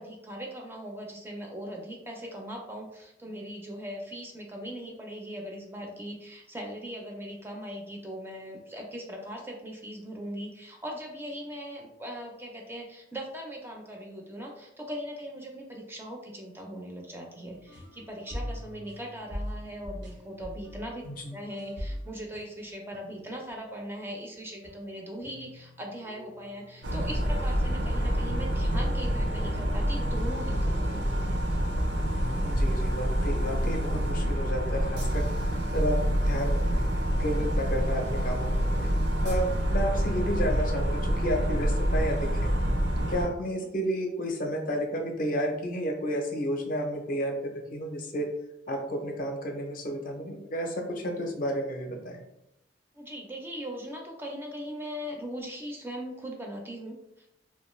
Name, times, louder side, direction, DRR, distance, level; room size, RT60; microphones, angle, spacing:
voice 1, 0.0-31.2 43.6-43.7 52.9-57.3, equal, 10° right, 0 dB, 0.4 m, -40 dB
sound 1, 17.4-24.1 24.4-33.8, equal, 85° right, 0.9 m, -44 dB
voice 2, 21.0-21.4 32.4-35.3 35.7-38.6 38.8-38.9 39.2-42.5 43.1-48.3 48.7-52.2, equal, 50° left, 2 dB, 0.5 m, -32 dB
sound 2, 26.8-43.3, equal, 65° right, 0.5 m, -27 dB
2.4 x 2.2 x 3.0 m, 0.87 s
head